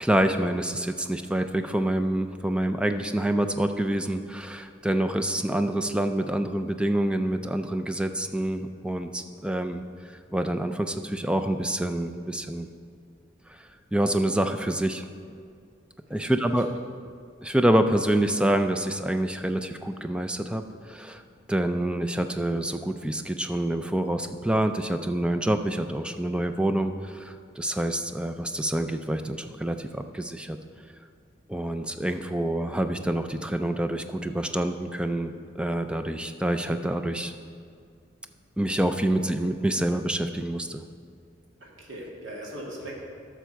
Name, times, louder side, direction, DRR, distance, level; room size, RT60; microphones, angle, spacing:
voice 1, 0.0-12.7 13.5-15.0 16.1-16.7 17.4-21.2 21.5-30.6 31.5-37.3 38.6-40.9, right 1 dB, 5° right, 7 dB, 0.3 m, -27 dB
voice 2, 41.6-43.0, right 1 dB, 90° right, -3 dB, 2.1 m, -39 dB
12.5 x 6.2 x 4.5 m, 2.2 s
head